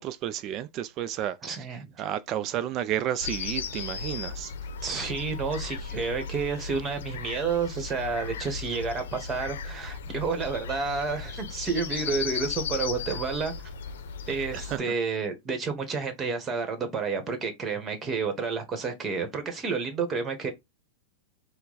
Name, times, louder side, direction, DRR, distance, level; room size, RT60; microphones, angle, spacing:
voice 1, 0.0-1.7 2.0-4.5 14.7-14.8, right 11 dB, 40° right, 0.4 m, -31 dB
voice 2, 1.4-1.9 4.8-13.5 14.3-20.5, right 5 dB, 25° right, 1.2 m, -30 dB
sound 1, 3.2-14.8, left 5 dB, 80° left, 0.6 m, -36 dB
4.5 x 2.2 x 3.9 m
hypercardioid pair, 125°, 0 cm